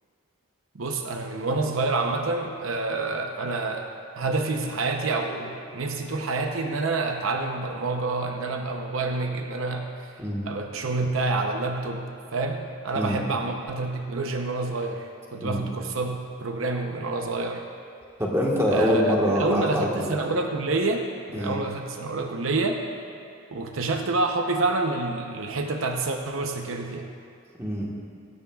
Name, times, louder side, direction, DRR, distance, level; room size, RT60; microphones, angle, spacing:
voice 1, 0.7-3.9 4.2-10.1 10.4-17.6 18.7-22.8 23.5-27.1, right 3 dB, 75° right, 4 dB, 0.8 m, -28 dB
voice 2, 18.2-20.2 21.3-21.6 27.6-27.9, equal, 15° right, -3 dB, 1.5 m, -25 dB
16.5 x 13.5 x 2.4 m, 2.4 s
head